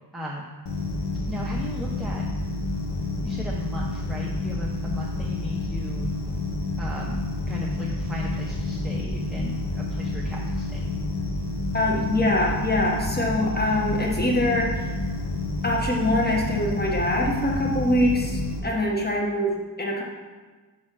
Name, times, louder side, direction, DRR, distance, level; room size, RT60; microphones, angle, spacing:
voice 1, 0.1-0.4 1.3-2.2 3.2-6.1 6.8-7.2 7.5-10.9, left 1 dB, ahead, -4 dB, 0.6 m, -36 dB
sound 1, 0.7-18.6, left 2 dB, 75° left, 1.1 m, -29 dB
voice 2, 11.7-14.9 15.6-20.0, left 1 dB, 25° left, -1 dB, 1.2 m, -24 dB
5.6 x 4.4 x 6.2 m, 1.3 s
wide cardioid pair, 130°, 41 cm